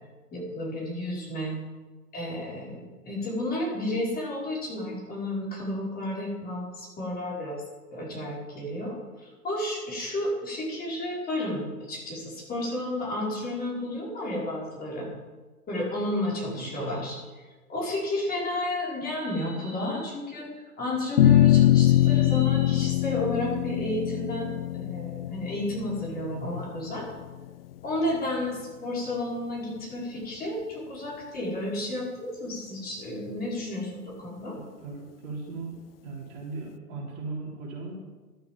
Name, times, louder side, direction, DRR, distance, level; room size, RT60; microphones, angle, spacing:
voice 1, 0.3-1.6 2.1-7.6 7.9-15.1 15.7-17.4 17.7-20.5 20.8-27.1 27.8-34.5, left 1 dB, 20° left, -5 dB, 5.3 m, -32 dB
sound 1, 21.2-27.7, left 13 dB, 40° left, 0.4 m, -23 dB
voice 2, 34.5-35.8 36.0-37.9, right 3 dB, 35° right, -3 dB, 3.9 m, -38 dB
13.0 x 8.9 x 7.7 m, 1.3 s
hypercardioid pair, 120°, 47 cm